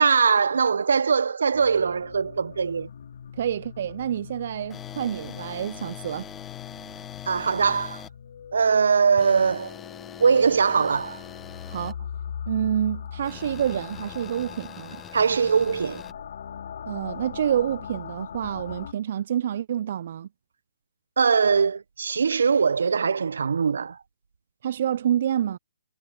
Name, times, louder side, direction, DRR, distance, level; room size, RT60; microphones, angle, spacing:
voice 1, 0.0-2.9 7.3-8.0 8.5-9.7 10.2-11.2 15.1-16.0 21.2-24.0, right 5 dB, 70° right, 1.1 m, -21 dB
sound 1, 1.5-18.9, left 8 dB, 60° left, 4.4 m, -41 dB
voice 2, 3.3-6.3 11.7-12.0 12.5-15.0 16.9-20.3 24.6-25.6, right 10 dB, 50° right, 0.6 m, -28 dB
sound 2, 4.7-8.1 9.2-11.9 13.2-16.1, left 9 dB, 15° left, 1.9 m, -43 dB
figure-of-eight pair, 135°, 0 cm